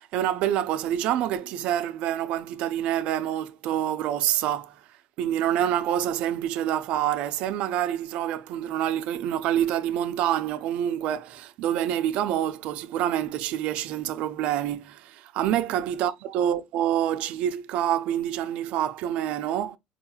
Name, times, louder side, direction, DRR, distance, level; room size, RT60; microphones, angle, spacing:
voice 1, 0.0-4.8 5.2-19.8, right 11 dB, 65° right, 0.5 m, -27 dB
4.7 x 2.3 x 2.7 m
cardioid pair, 140°, 2 cm